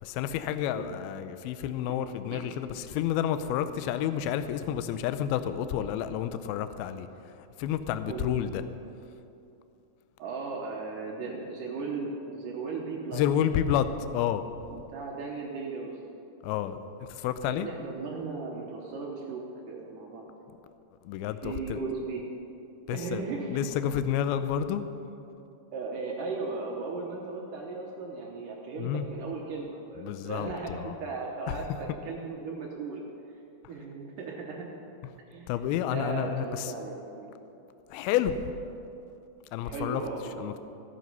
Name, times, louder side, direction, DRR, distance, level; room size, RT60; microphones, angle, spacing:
voice 1, 0.0-8.6 13.1-14.5 16.4-17.7 21.0-21.8 22.9-23.2 23.5-24.8 28.8-29.1 30.0-30.9 31.5-31.6 35.5-36.7 37.9-38.5 39.5-40.0 40.4-40.6, left 10 dB, 85° left, 11 dB, 2.2 m, -30 dB
voice 2, 10.2-13.2 14.7-15.9 17.5-20.3 21.4-22.2 22.9-23.6 25.7-33.1 33.7-34.7 35.2-35.5 35.9-37.3 39.6-40.5, right 4 dB, 70° right, -1 dB, 2.2 m, -36 dB
15.0 x 9.3 x 5.5 m, 2.7 s
omnidirectional pair, 4.8 m